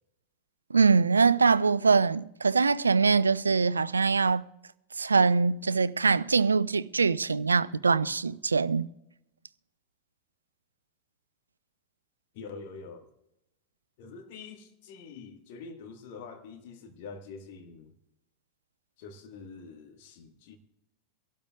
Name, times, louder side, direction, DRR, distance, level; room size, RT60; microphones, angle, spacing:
voice 1, 0.7-4.4 5.0-8.9, right 4 dB, 75° right, 0.3 m, -23 dB
voice 2, 12.3-13.1 14.0-17.9 19.0-20.6, left 4 dB, 50° left, 1.7 m, -45 dB
24.5 x 12.5 x 2.4 m
figure-of-eight pair, 90°, 0 cm